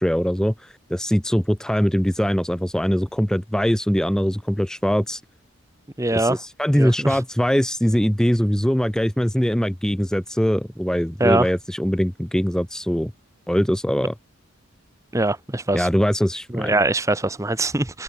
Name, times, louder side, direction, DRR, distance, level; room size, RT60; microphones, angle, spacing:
voice 1, 0.0-5.2 6.1-13.1 13.5-14.1 15.7-16.7, equal, 5° left, 0.7 m, -22 dB
voice 2, 6.0-6.4 6.8-7.2 11.2-11.5 15.1-15.9 16.5-18.0, right 2 dB, 15° right, 1.0 m, -22 dB
open air
head